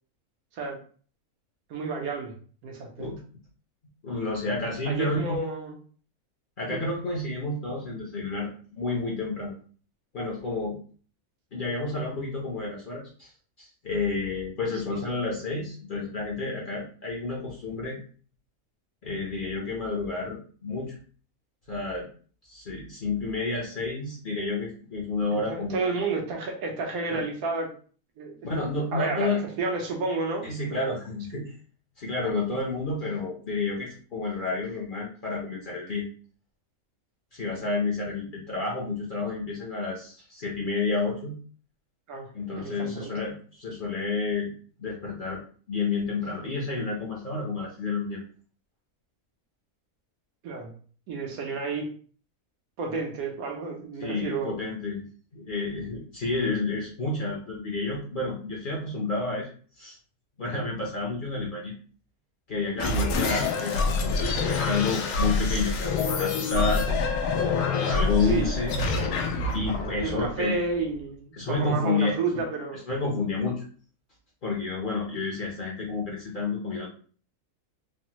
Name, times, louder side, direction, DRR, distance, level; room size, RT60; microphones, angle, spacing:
voice 1, 1.7-2.3 2.6-3.1 4.9-5.8 6.7-6.8 14.9-15.0 25.3-27.7 28.2-28.4 28.9-30.4 30.7-30.9 42.1-42.3 42.6-43.1 50.4-50.7 51.1-51.9 52.8-54.6 68.2-68.5 70.0-72.8, right 3 dB, 80° right, 1 dB, 1.2 m, -31 dB
voice 2, 4.0-5.4 6.6-9.5 10.1-10.8 11.5-13.3 13.6-18.0 19.0-21.0 21.7-22.1 22.4-25.9 27.1-27.2 28.4-29.4 30.4-31.5 32.0-36.1 37.3-41.4 42.3-44.5 44.8-45.4 45.7-48.2 54.0-55.0 55.3-59.5 59.8-60.0 60.4-61.7 62.5-67.0 67.4-68.7 69.5-70.6 71.3-72.1 72.9-73.6 74.4-76.9, left 3 dB, 50° left, -3 dB, 0.6 m, -30 dB
sound 1, 62.8-71.0, left 4 dB, 90° left, 1.1 m, -26 dB
3.3 x 2.0 x 2.8 m, 0.43 s
omnidirectional pair, 1.5 m